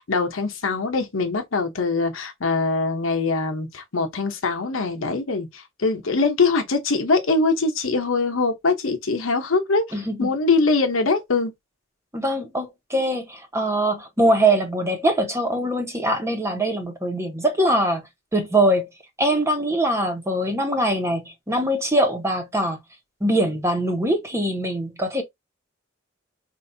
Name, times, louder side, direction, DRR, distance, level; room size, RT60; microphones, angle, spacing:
voice 1, 0.0-9.8 10.2-11.5, left 3 dB, 90° left, 0.9 m, -22 dB
voice 2, 9.9-10.3 12.1-18.0 18.3-18.9 19.2-22.8 23.2-25.2, right 1 dB, 15° right, 1.0 m, -22 dB
4.6 x 2.6 x 2.7 m
head